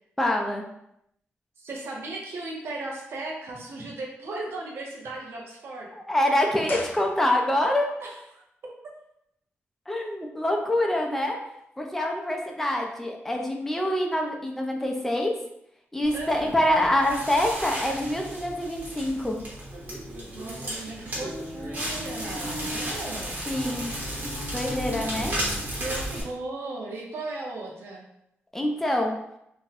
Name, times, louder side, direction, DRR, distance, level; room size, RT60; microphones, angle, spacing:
voice 1, 0.2-0.6 6.1-7.9 9.9-11.4 11.8-15.3 15.9-19.4 23.5-23.9 24.5-25.3 28.5-29.2, left 1 dB, 5° left, 0 dB, 0.5 m, -25 dB
voice 2, 1.6-5.9 8.0-8.4 16.1-16.5 20.3-23.4 25.7-28.1, right 2 dB, 70° right, -2 dB, 0.7 m, -36 dB
sound 1, 6.6-7.7 8.0-8.1, left 2 dB, 55° left, 0.6 m, -39 dB
Crackle, 16.0-26.2, equal, 45° right, 1.1 m, -34 dB
2.6 x 2.1 x 4.0 m, 0.78 s
wide cardioid pair, 115°, 4 cm